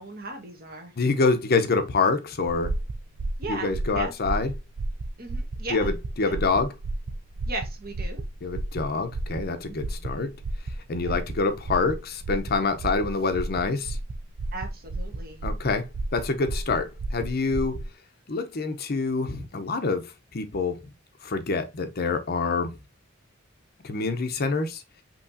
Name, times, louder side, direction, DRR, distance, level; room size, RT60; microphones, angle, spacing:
voice 1, 0.0-0.9 3.4-4.1 5.2-5.9 6.3-6.4 7.5-8.2 9.7-10.1 11.0-11.2 14.5-15.4, right 2 dB, 50° right, 1.4 m, -37 dB
voice 2, 1.0-2.7 3.5-4.5 5.7-6.7 8.4-10.3 10.9-14.0 15.4-15.9 16.1-17.8 18.3-20.8 21.2-22.8 23.8-24.8, left 4 dB, 50° left, 0.7 m, -26 dB
sound 1, 2.5-17.9, right 2 dB, 65° right, 0.5 m, -32 dB
5.5 x 3.0 x 2.6 m
head